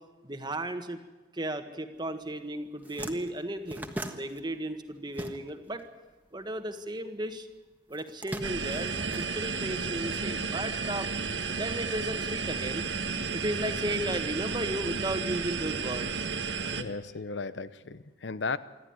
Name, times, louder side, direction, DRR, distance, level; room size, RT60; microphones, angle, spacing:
voice 1, 0.2-1.0 1.3-5.8 6.3-7.5 7.9-11.1 11.5-12.9 13.3-16.2, right 1 dB, 25° right, 7 dB, 1.6 m, -35 dB
sound 1, 2.2-2.4 2.6-5.8 6.1-7.3 7.9-9.9, right 1 dB, 10° right, 1.4 m, -41 dB
sound 2, 8.4-16.8, right 5 dB, 75° right, 1.5 m, -32 dB
voice 2, 16.8-18.6, left 4 dB, 85° left, 14 dB, 0.8 m, -35 dB
25.5 x 13.5 x 9.7 m, 1.2 s
head